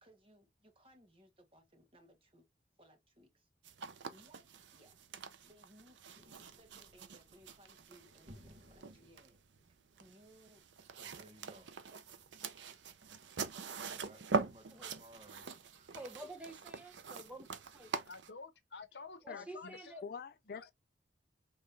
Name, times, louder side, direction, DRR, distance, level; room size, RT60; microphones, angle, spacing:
voice 1, 0.0-2.4 2.8-3.5 4.1-4.5 4.7-5.0 5.4-9.4 10.0-12.0 13.9-16.2 16.8-16.9, right 1 dB, 30° right, 1.4 m, -62 dB
sound 1, 3.6-18.3, right 5 dB, 90° right, 0.6 m, -44 dB
sound 2, 6.1-10.3, equal, 55° right, 1.5 m, -61 dB
voice 2, 15.9-17.5 17.7-17.9 19.2-20.0, right 1 dB, 5° right, 0.8 m, -49 dB
voice 3, 18.1-20.0 20.5-20.7, left 4 dB, 75° left, 0.9 m, -50 dB
voice 4, 19.3-20.7, left 6 dB, 55° left, 0.3 m, -47 dB
5.3 x 3.2 x 2.6 m
head